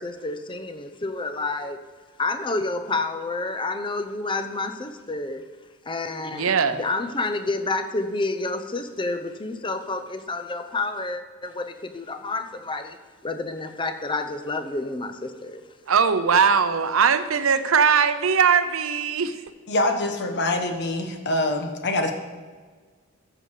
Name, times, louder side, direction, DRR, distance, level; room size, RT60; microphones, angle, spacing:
voice 1, 0.0-1.8 2.2-5.4 5.9-13.0 13.2-15.6, left 3 dB, 25° left, 9 dB, 0.7 m, -29 dB
voice 2, 6.3-6.8 15.9-19.4, right 6 dB, 70° right, 12 dB, 0.6 m, -20 dB
voice 3, 19.7-22.1, left 1 dB, 55° left, 5 dB, 1.2 m, -24 dB
13.0 x 6.8 x 4.9 m, 1.5 s
head